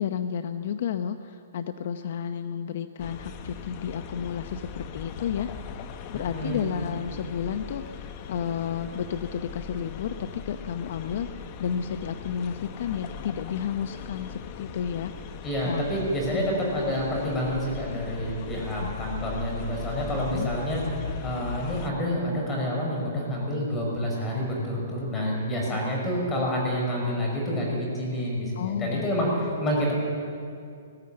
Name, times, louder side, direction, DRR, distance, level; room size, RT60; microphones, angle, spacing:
voice 1, 0.0-5.5 6.1-15.4 15.7-15.8 18.8-19.1 20.1-20.5 28.6-29.1, left 8 dB, 55° left, 9 dB, 0.7 m, -32 dB
sound 1, 3.0-21.9, left 6 dB, 30° left, 1.1 m, -39 dB
voice 2, 6.1-6.7 15.4-29.9, equal, 15° left, -2 dB, 5.7 m, -28 dB
20.5 x 14.5 x 8.8 m, 2.4 s
hypercardioid pair, 155°, 0 cm